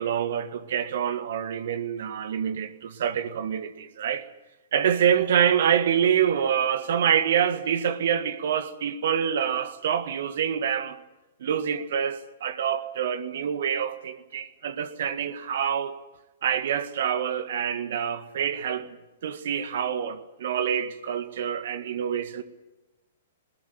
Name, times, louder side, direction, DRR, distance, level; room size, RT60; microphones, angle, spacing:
voice 1, 0.0-4.3 4.7-11.0 11.4-16.0 16.4-19.0 19.2-22.4, right 8 dB, 60° right, 1.9 m, -26 dB
20.5 x 19.5 x 9.2 m
figure-of-eight pair, 110°, 0 cm